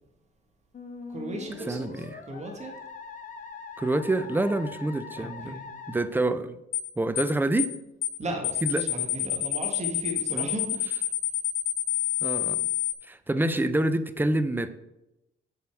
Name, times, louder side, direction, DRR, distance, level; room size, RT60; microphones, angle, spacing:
Musical instrument, 0.7-6.0, left 5 dB, 40° left, 1.2 m, -42 dB
voice 1, 1.1-2.7 5.2-5.6 8.2-10.8, right 1 dB, 35° right, 2 dB, 1.8 m, -36 dB
voice 2, 1.7-2.2 3.8-5.6 5.9-6.6 7.0-7.7 8.6-8.8 10.3-10.5 12.2-12.7 13.1-14.7, right 2 dB, 10° right, 12 dB, 0.6 m, -27 dB
sound 1, 6.7-6.9 7.2-7.3 7.6-7.8 8.0-8.2 8.4-12.9, left 14 dB, 80° left, 0.8 m, -27 dB
7.4 x 5.6 x 4.6 m, 0.90 s
cardioid pair, 90°, 20 cm